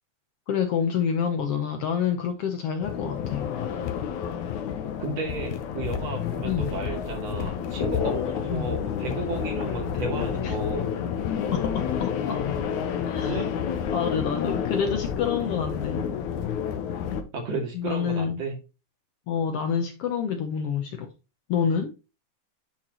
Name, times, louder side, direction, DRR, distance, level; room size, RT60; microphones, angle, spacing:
voice 1, 0.5-3.5 6.4-6.7 8.5-8.7 10.4-10.6 11.5-12.4 13.1-13.4 13.9-16.1 17.7-18.4 19.3-21.1 21.5-21.9, left 7 dB, 70° left, 1.6 m, -27 dB
sound 1, 2.8-17.2, left 8 dB, 90° left, 2.4 m, -29 dB
voice 2, 5.0-10.9 13.3-13.5 13.8-13.9 17.3-18.6, right 3 dB, 60° right, 3.3 m, -33 dB
9.9 x 4.5 x 2.9 m
omnidirectional pair, 3.3 m